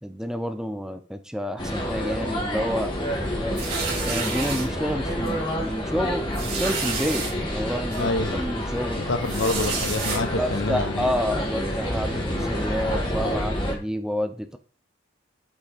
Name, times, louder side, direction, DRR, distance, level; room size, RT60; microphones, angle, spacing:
voice 1, 0.0-2.9 3.4-3.6 4.0-9.0 10.4-14.6, equal, 5° right, 0.7 m, -29 dB
sound 1, 1.6-13.7, equal, 25° left, 2.0 m, -28 dB
sound 2, 3.6-4.7 5.3-5.4 5.7-5.8 6.3-7.3 7.9-8.0 9.2-10.2, right 5 dB, 55° right, 4.3 m, -30 dB
voice 2, 8.0-8.4 9.0-11.1, left 3 dB, 90° left, 0.9 m, -27 dB
8.8 x 5.6 x 4.3 m
head